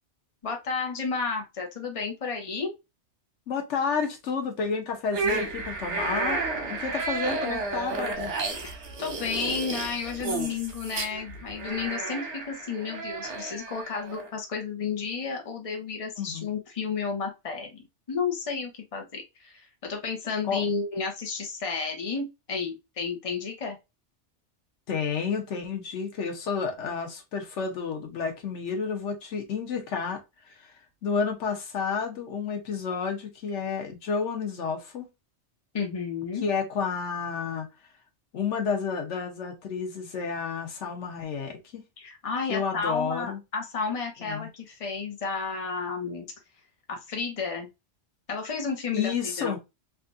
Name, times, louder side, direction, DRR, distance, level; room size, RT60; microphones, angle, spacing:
voice 1, 0.4-2.7 8.6-23.8 35.7-36.5 42.0-46.2 46.9-47.7 48.3-49.6, left 5 dB, 35° left, 0.9 m, -32 dB
voice 2, 3.5-6.4 6.7-8.3 16.2-16.5 20.5-20.6 24.9-30.2 30.5-30.7 31.0-35.1 36.4-37.7 38.3-41.8 42.5-43.4 44.2-44.5 48.9-49.6, left 6 dB, 85° left, 1.2 m, -30 dB
sound 1, 5.1-14.3, right 3 dB, 85° right, 1.3 m, -32 dB
3.4 x 2.4 x 2.5 m
omnidirectional pair, 1.2 m